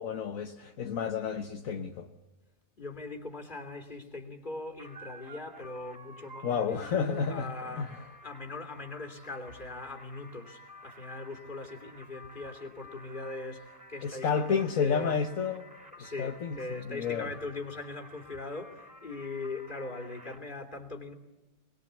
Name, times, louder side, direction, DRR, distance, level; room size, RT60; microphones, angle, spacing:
voice 1, 0.0-2.1 6.4-7.5 7.8-8.0 14.0-15.7 16.0-17.3, left 6 dB, 60° left, 1.5 m, -31 dB
voice 2, 2.8-15.2 16.0-21.1, left 2 dB, 30° left, 3.3 m, -41 dB
sound 1, 4.8-20.4, equal, 5° right, 3.7 m, -52 dB
29.5 x 21.0 x 8.2 m
omnidirectional pair, 1.7 m